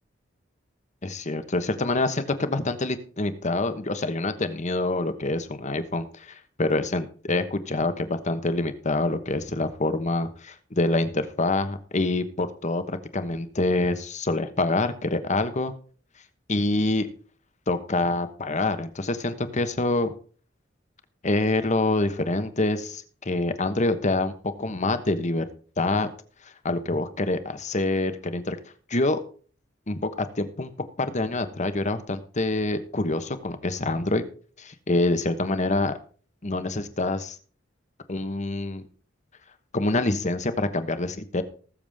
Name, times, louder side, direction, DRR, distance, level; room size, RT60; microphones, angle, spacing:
voice 1, 1.0-15.7 16.5-17.1 17.7-20.1 21.2-25.5 25.8-26.1 26.6-28.6 28.9-29.2 29.9-30.7 31.0-34.2 34.6-35.9 36.4-37.4 38.1-38.8 39.7-41.4, left 2 dB, 40° left, 10 dB, 1.2 m, -26 dB
19.5 x 7.2 x 3.6 m, 0.41 s
head